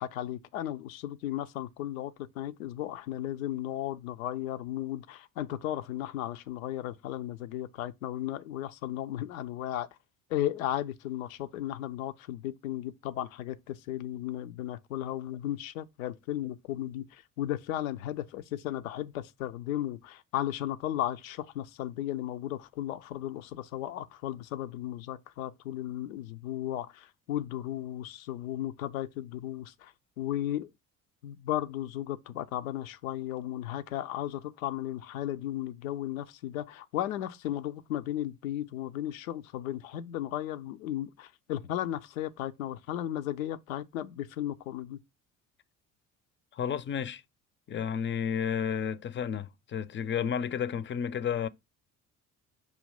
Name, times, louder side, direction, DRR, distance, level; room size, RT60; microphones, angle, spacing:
voice 1, 0.0-9.9 10.3-30.7 31.2-45.0, left 12 dB, 75° left, 0.6 m, -35 dB
voice 2, 46.5-47.2 47.7-51.5, left 7 dB, 30° left, 0.5 m, -31 dB
6.3 x 2.8 x 5.4 m
figure-of-eight pair, 50°, 41 cm